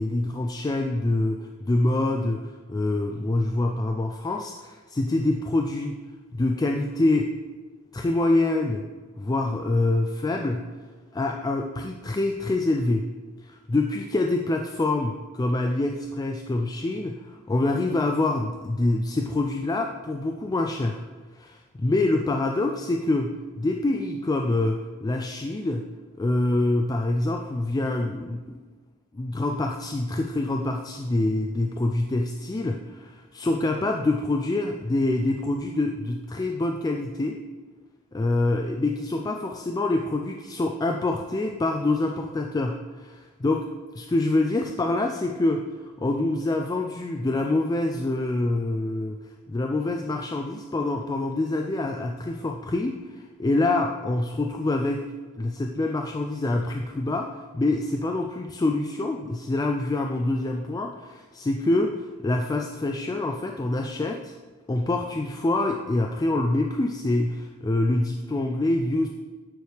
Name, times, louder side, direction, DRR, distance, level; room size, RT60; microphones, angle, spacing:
voice 1, 0.0-6.0 6.3-7.3 7.9-8.9 9.2-10.7 11.1-13.1 13.4-21.0 21.3-25.9 26.2-28.6 29.1-37.4 38.1-49.2 49.5-55.1 55.4-64.3 64.7-69.1, left 2 dB, 15° left, 3 dB, 0.3 m, -26 dB
9.3 x 4.7 x 3.4 m, 1.4 s
head